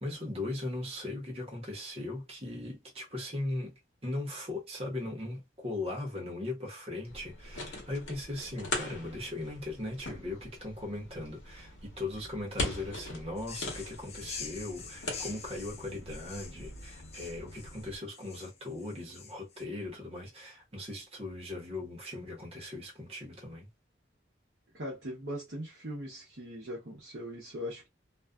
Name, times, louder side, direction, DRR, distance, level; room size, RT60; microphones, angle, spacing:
voice 1, 0.0-3.7 4.0-23.7, left 2 dB, 30° right, 1.0 m, -39 dB
sound 1, 7.1-18.0, left 2 dB, 80° left, 1.0 m, -41 dB
sound 2, 13.4-19.6, left 6 dB, 35° left, 0.4 m, -46 dB
voice 2, 24.7-27.9, equal, 65° right, 0.8 m, -40 dB
2.5 x 2.3 x 2.3 m
head